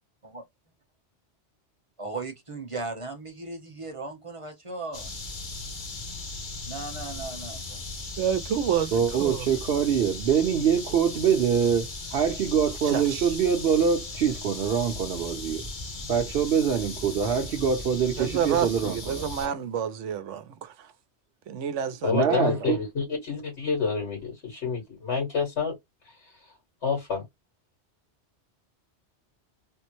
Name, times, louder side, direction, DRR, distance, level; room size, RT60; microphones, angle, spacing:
voice 1, 2.0-5.1 6.6-7.8, right 3 dB, 30° right, 0.8 m, -37 dB
sound 1, 4.9-19.5, left 3 dB, 45° left, 1.0 m, -38 dB
voice 2, 8.2-8.9 9.2-9.5 12.9-13.3 18.2-20.7 21.5-22.5, right 8 dB, 85° right, 1.0 m, -29 dB
voice 3, 8.9-15.7 16.1-19.2 22.1-22.8, right 7 dB, 60° right, 0.9 m, -24 dB
voice 4, 22.0-25.8 26.0-26.5 26.8-27.2, left 5 dB, 70° left, 1.9 m, -28 dB
3.6 x 2.1 x 2.9 m
omnidirectional pair, 1.2 m